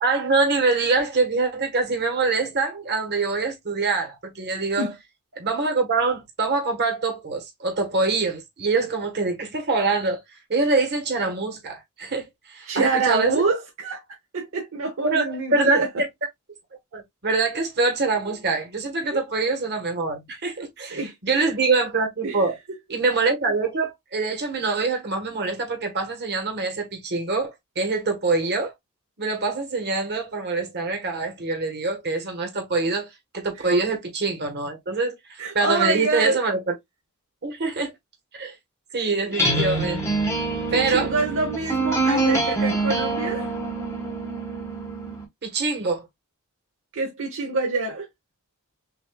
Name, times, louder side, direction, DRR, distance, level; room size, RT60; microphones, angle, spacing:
voice 1, 0.0-4.9 5.4-10.2 10.5-12.2 12.5-13.4 15.0-16.1 16.9-22.6 22.9-28.7 29.2-33.1 33.3-36.7 37.4-37.9 38.4-38.5 38.9-40.0 40.7-41.1 45.4-46.1, right 3 dB, 50° right, 1.4 m, -24 dB
voice 2, 12.6-14.0 14.3-16.0 19.0-19.2 20.6-21.5 22.2-22.5 33.6-33.7 35.4-36.4 40.7-43.5 46.9-48.1, right 3 dB, 65° right, 0.9 m, -26 dB
sound 1, 39.3-45.2, right 2 dB, 15° left, 1.2 m, -25 dB
6.1 x 2.7 x 2.3 m
head